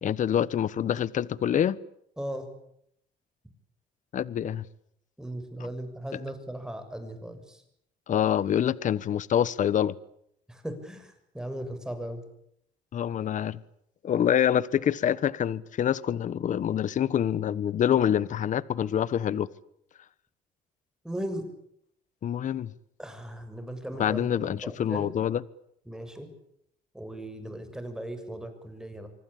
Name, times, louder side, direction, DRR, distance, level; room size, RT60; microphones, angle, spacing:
voice 1, 0.0-1.8 4.1-4.6 8.1-10.0 12.9-13.6 14.0-19.5 22.2-22.7 24.0-25.4, left 9 dB, 50° left, 19 dB, 1.2 m, -26 dB
voice 2, 2.2-2.5 5.2-7.6 10.5-12.2 21.0-21.4 23.0-25.2 25.9-26.3 26.9-29.1, right 1 dB, 5° right, 8 dB, 6.6 m, -37 dB
25.5 x 25.0 x 8.8 m, 0.73 s
cardioid pair, 110°, 17 cm